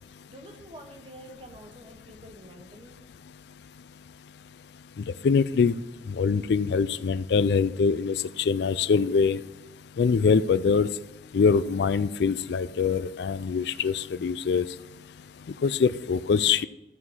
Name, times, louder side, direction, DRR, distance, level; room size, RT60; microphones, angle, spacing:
voice 1, 0.3-3.0, right 1 dB, 30° right, 1.2 m, -47 dB
voice 2, 5.0-5.7 6.1-9.4 10.0-10.9 11.3-14.7 15.6-16.7, left 5 dB, 65° left, 0.4 m, -23 dB
13.0 x 4.8 x 5.5 m
head